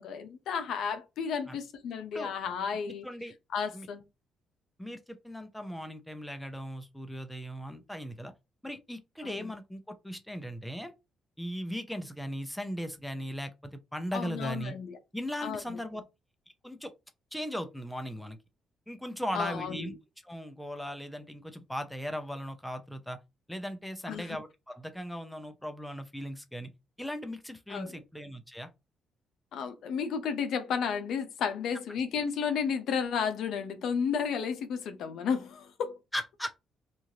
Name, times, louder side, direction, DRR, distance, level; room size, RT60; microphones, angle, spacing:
voice 1, 0.0-3.1 3.5-4.0 9.2-9.5 14.1-15.0 15.4-15.6 19.3-19.8 24.1-24.4 27.7-28.0 29.5-35.9, left 6 dB, 75° left, 0.5 m, -32 dB
voice 2, 3.0-3.3 3.7-3.9 4.8-8.3 8.6-10.9 11.4-14.7 15.1-16.0 16.6-16.9 17.3-18.4 18.9-19.9 20.2-23.2 23.5-26.7 27.0-28.7 36.1-36.5, equal, 5° left, 0.5 m, -38 dB
3.0 x 2.4 x 2.7 m
cardioid pair, 90°, 0 cm